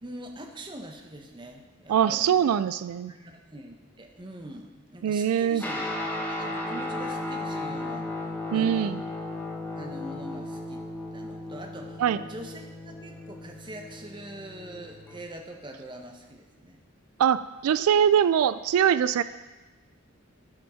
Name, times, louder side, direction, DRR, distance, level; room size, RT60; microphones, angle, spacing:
voice 1, 0.0-2.5 3.1-5.8 6.2-8.1 8.5-9.0 9.8-10.9 11.1-12.0 12.3-16.8, right 1 dB, 20° right, 3 dB, 0.9 m, -43 dB
voice 2, 1.9-3.1 5.0-5.6 8.5-9.0 12.0-12.2 17.2-19.2, right 9 dB, 90° right, 14 dB, 0.3 m, -23 dB
Guitar, 5.6-15.2, left 2 dB, 10° left, 1.0 m, -35 dB
12.5 x 5.2 x 5.6 m, 1.2 s
head